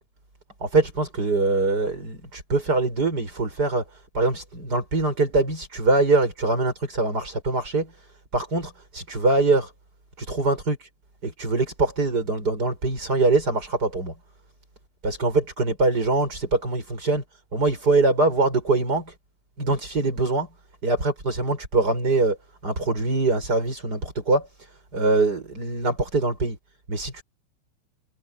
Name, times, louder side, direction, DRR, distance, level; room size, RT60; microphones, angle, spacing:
voice 1, 0.6-9.7 10.2-10.9 11.2-14.1 15.0-19.1 19.6-20.5 20.8-22.4 22.6-26.6 26.9-27.2, right 3 dB, 20° right, 6.7 m, -23 dB
omnidirectional pair, 5.8 m